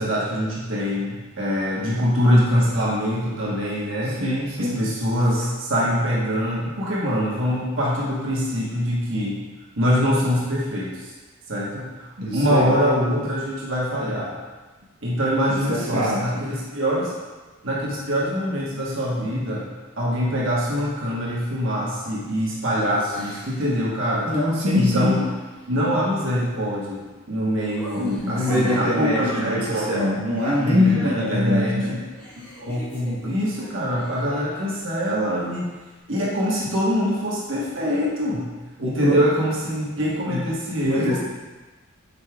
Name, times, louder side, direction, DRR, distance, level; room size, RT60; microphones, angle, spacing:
voice 1, 0.0-4.2 4.6-9.4 9.8-11.1 11.5-14.4 15.0-17.1 17.6-19.6 20.0-24.3 24.7-25.2 25.7-27.0 27.3-30.0 30.6-32.0 32.6-35.7 36.1-38.5 38.8-41.2, equal, 60° right, -5 dB, 1.3 m, -24 dB
voice 2, 4.0-4.9 12.2-12.7 15.5-16.4 24.2-25.2 27.9-32.0 38.8-39.2 40.2-40.6 40.8-41.2, left 1 dB, 85° right, -5 dB, 1.2 m, -23 dB
Laughter, 22.7-23.8 24.8-25.8 27.6-31.5 31.8-34.9, equal, 10° left, 1.2 m, -40 dB
7.8 x 5.5 x 2.4 m, 1.2 s
head